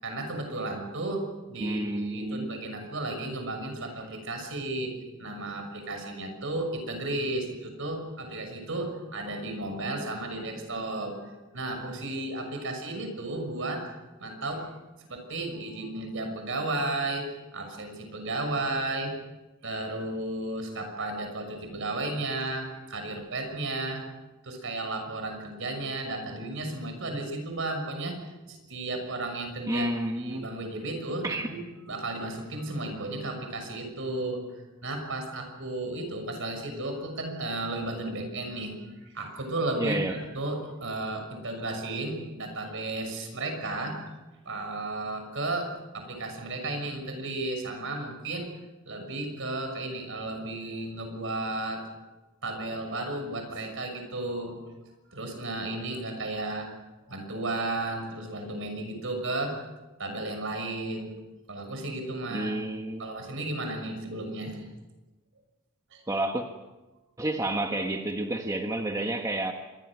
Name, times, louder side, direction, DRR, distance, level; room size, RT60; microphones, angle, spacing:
voice 1, 0.0-4.9 5.2-13.9 14.2-14.7 15.1-19.1 19.6-24.0 24.4-28.2 28.4-29.9 30.2-31.6 31.9-34.4 34.8-40.0 40.3-44.0 44.4-48.5 48.8-51.8 52.4-54.6 55.1-56.7 57.1-59.6 60.0-61.1 61.5-62.5 63.0-64.6 65.9-66.0, right 2 dB, 60° right, 5 dB, 6.3 m, -33 dB
voice 2, 1.6-2.6 29.7-30.5 31.2-31.5 39.8-40.2 62.3-63.1 66.1-66.4 67.2-69.5, right 1 dB, 15° right, 4 dB, 1.3 m, -30 dB
26.0 x 22.5 x 6.3 m, 1.1 s
head